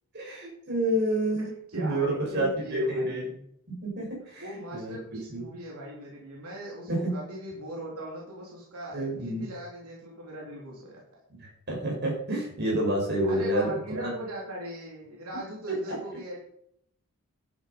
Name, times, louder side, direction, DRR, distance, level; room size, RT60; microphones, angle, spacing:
voice 1, 0.1-1.5 1.8-2.1 2.3-3.2 3.7-4.4 4.7-5.0 5.3-5.4 6.9-7.1 8.9-9.5 11.4-14.1 15.7-16.0, right 1 dB, 50° right, -2 dB, 6.1 m, -29 dB
voice 2, 1.7-3.4 4.4-11.0 13.3-16.4, right 1 dB, 80° right, -3 dB, 3.4 m, -39 dB
11.5 x 8.6 x 5.3 m, 0.71 s
head